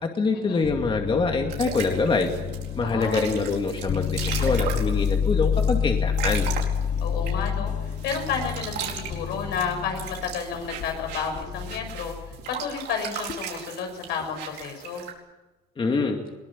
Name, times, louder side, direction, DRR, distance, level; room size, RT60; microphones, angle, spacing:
voice 1, 0.0-2.3 2.7-6.5 15.8-16.2, left 4 dB, 30° left, 3 dB, 2.4 m, -25 dB
sound 1, 0.6-12.4 13.3-13.6, left 7 dB, 45° left, 1.1 m, -29 dB
sound 2, 1.5-7.5 7.9-15.1, right 8 dB, 80° right, 4.6 m, -36 dB
sound 3, 2.2-11.9, left 2 dB, 60° left, 6.3 m, -49 dB
voice 2, 2.8-3.2 7.0-12.1 12.5-15.0, left 6 dB, 80° left, 4 dB, 6.4 m, -31 dB
22.0 x 19.0 x 8.7 m, 1.2 s
cardioid pair, 110°, 17 cm